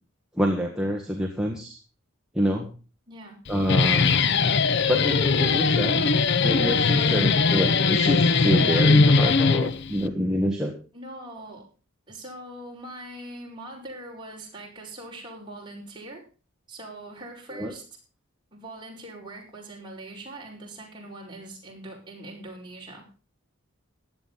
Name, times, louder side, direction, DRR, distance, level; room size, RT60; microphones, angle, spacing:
voice 1, 0.4-1.8 2.3-2.7 3.5-4.2 4.9-6.1 6.4-10.7 17.5-17.7, equal, 5° right, -1 dB, 1.5 m, -27 dB
voice 2, 3.1-3.4 4.0-4.4 5.9-6.2 7.0-7.3 10.9-11.6 12.1-16.2 16.7-17.8 18.5-23.1, right 1 dB, 20° right, -3 dB, 5.1 m, -42 dB
Guitar, 3.5-10.1, left 4 dB, 50° left, 0.6 m, -20 dB
16.0 x 10.5 x 4.0 m, 0.34 s
head